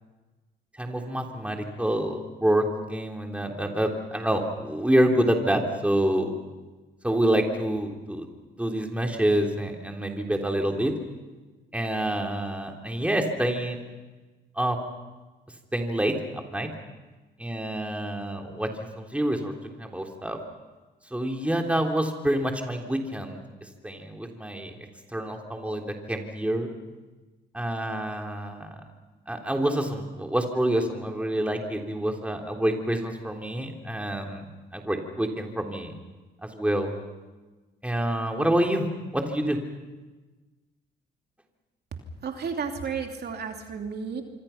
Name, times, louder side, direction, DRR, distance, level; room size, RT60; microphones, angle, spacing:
voice 1, 0.8-6.4 7.0-8.3 8.6-10.9 11.7-13.8 14.5-14.8 15.7-16.1 16.5-16.7 17.4-18.7 19.0-19.5 19.8-20.4 21.1-23.4 23.8-24.7 25.1-26.7 27.5-28.7 29.3-34.4 34.7-35.9 36.4-36.9 37.8-38.9 39.1-39.6, right 1 dB, 5° right, 2 dB, 3.4 m, -27 dB
voice 2, 42.2-44.2, right 6 dB, 55° right, 3 dB, 2.9 m, -32 dB
26.0 x 25.5 x 5.8 m, 1.2 s
cardioid pair, 90°, 20 cm